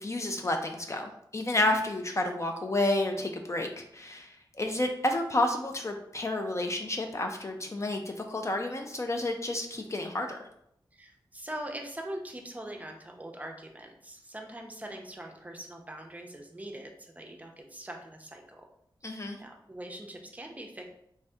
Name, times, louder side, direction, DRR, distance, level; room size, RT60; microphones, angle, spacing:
voice 1, 0.0-10.4 19.0-19.4, left 2 dB, 35° left, 4 dB, 0.4 m, -30 dB
voice 2, 10.9-18.7 19.0-20.9, right 1 dB, 15° right, 1 dB, 0.5 m, -42 dB
3.3 x 2.7 x 3.4 m, 0.75 s
wide cardioid pair, 110°, 9 cm